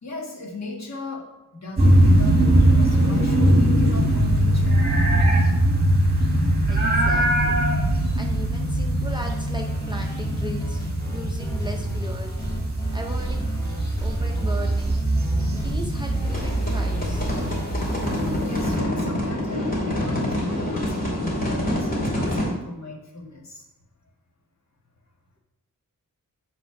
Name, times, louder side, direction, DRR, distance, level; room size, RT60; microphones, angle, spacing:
voice 1, 0.0-1.3 1.5-4.9 6.3-6.5 15.4-15.6 18.4-23.7, left 2 dB, 55° left, -1 dB, 1.5 m, -37 dB
sound 1, 1.8-18.8, right 1 dB, 30° right, 1.7 m, -21 dB
voice 2, 6.7-7.6 8.2-12.4 12.9-13.5 14.0-15.0 15.5-17.3, equal, 15° right, 1 dB, 0.6 m, -37 dB
sound 2, 9.0-17.7, right 1 dB, 10° left, 1.7 m, -35 dB
sound 3, 16.2-22.5, left 1 dB, 25° left, 2.2 m, -26 dB
9.1 x 3.4 x 5.7 m, 0.95 s
wide cardioid pair, 155°, 33 cm